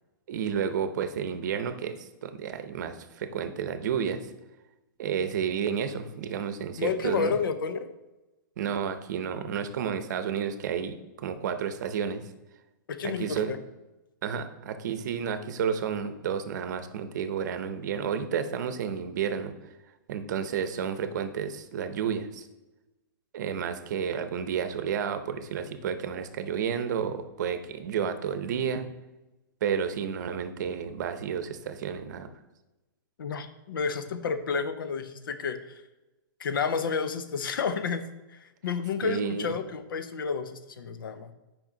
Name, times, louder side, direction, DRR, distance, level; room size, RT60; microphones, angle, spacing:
voice 1, 0.3-4.2 5.0-7.4 8.6-12.2 13.0-13.5 14.2-19.5 20.1-22.5 23.3-28.9 29.6-32.3 39.0-39.5, right 7 dB, 55° right, 10 dB, 0.7 m, -31 dB
voice 2, 6.8-7.9 12.9-13.6 33.2-35.6 36.4-38.0 38.6-41.3, left 5 dB, 85° left, 10 dB, 0.7 m, -30 dB
6.1 x 5.1 x 3.8 m, 1.0 s
hypercardioid pair, 160°, 11 cm